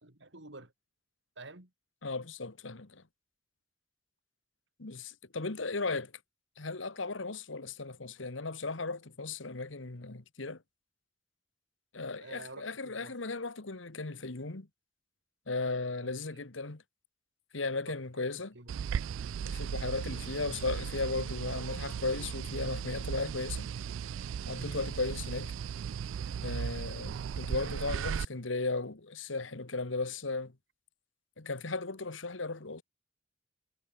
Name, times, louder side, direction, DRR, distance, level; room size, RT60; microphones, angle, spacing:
voice 1, 0.0-0.7 1.4-1.7 12.2-13.2 16.0-16.5 17.9-18.0 18.3-18.7 24.7-25.0, right 2 dB, 65° right, 3.8 m, -50 dB
voice 2, 2.0-3.0 4.8-6.1 6.6-10.6 11.9-14.7 15.5-16.8 17.5-18.5 19.4-23.7 24.5-25.5 26.4-30.5 31.4-32.8, left 3 dB, 80° left, 1.6 m, -36 dB
sound 1, 18.7-28.2, right 7 dB, 85° right, 0.3 m, -36 dB
head